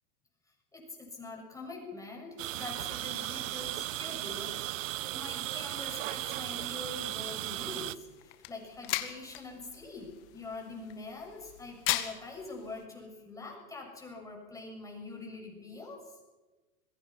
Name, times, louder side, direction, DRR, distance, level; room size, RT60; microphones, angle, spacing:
voice 1, 0.7-16.2, left 3 dB, 5° left, 1 dB, 7.1 m, -44 dB
sound 1, 2.4-8.0, right 16 dB, 50° right, 1.0 m, -36 dB
sound 2, 7.4-12.8, left 16 dB, 45° left, 2.1 m, -39 dB
26.5 x 22.0 x 5.8 m, 1.2 s
hypercardioid pair, 130°, 49 cm